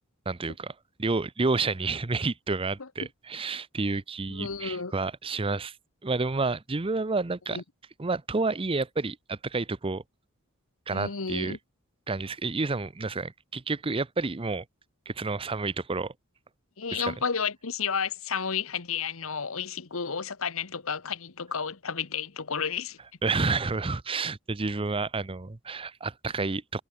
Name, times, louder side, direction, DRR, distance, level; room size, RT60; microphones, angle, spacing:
voice 1, 0.3-5.8 6.0-7.6 8.0-10.0 10.9-11.6 12.1-14.6 15.1-16.1 16.9-17.1 23.2-26.8, right 3 dB, 25° right, 0.7 m, -30 dB
voice 2, 4.3-4.9 7.5-7.6 10.9-11.6 16.8-23.0, left 6 dB, 65° left, 1.2 m, -32 dB
head